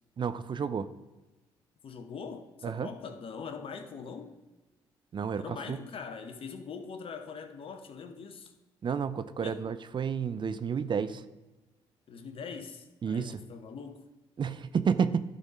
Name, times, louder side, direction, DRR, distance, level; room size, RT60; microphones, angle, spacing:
voice 1, 0.2-0.9 2.6-2.9 5.1-5.8 8.8-11.2 13.0-13.4 14.4-15.2, right 6 dB, 45° right, 13 dB, 0.6 m, -30 dB
voice 2, 1.8-4.3 5.4-8.5 9.4-9.6 12.1-14.1, left 5 dB, 55° left, 7 dB, 1.1 m, -42 dB
11.5 x 4.2 x 5.1 m, 1.1 s
supercardioid pair, 55°, 11 cm